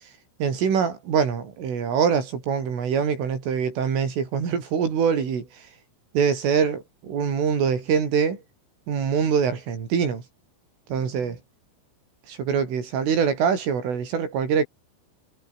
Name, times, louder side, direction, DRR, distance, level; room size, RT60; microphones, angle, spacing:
voice 1, 0.4-5.7 6.1-8.4 8.9-10.2 10.9-11.4 12.3-14.6, right 7 dB, 85° right, 7.7 m, -24 dB
omnidirectional pair, 5.6 m